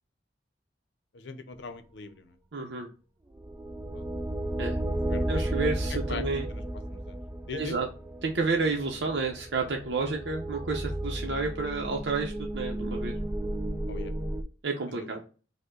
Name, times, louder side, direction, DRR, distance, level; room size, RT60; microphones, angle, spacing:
voice 1, 1.1-2.3 3.9-4.1 4.9-6.2 6.5-6.6 6.9-7.2 7.5-7.7 13.9-14.1 14.9-15.1, left 4 dB, 75° left, 10 dB, 0.6 m, -41 dB
voice 2, 2.5-2.9 4.6-4.8 5.3-6.5 7.5-7.9 8.2-13.2 14.6-15.2, right 3 dB, 70° right, 1 dB, 0.7 m, -30 dB
sound 1, 3.3-14.4, right 1 dB, 15° right, 0.3 m, -33 dB
5.4 x 2.2 x 3.7 m, 0.35 s
head